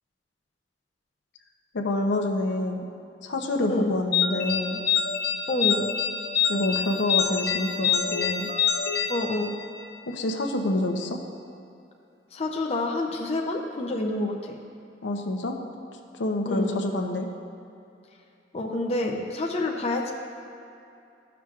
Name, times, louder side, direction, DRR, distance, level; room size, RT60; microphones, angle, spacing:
voice 1, 1.7-2.8 3.2-4.8 6.5-8.5 10.1-11.2 15.0-15.6 16.2-17.3, left 2 dB, 85° left, 2 dB, 0.7 m, -27 dB
voice 2, 3.6-3.9 5.5-5.9 9.1-9.5 12.3-14.5 16.5-16.7 18.5-20.1, left 2 dB, 35° left, 0 dB, 0.5 m, -28 dB
sound 1, 4.1-9.9, left 7 dB, 60° left, 0.9 m, -26 dB
13.0 x 5.9 x 2.4 m, 2.6 s
head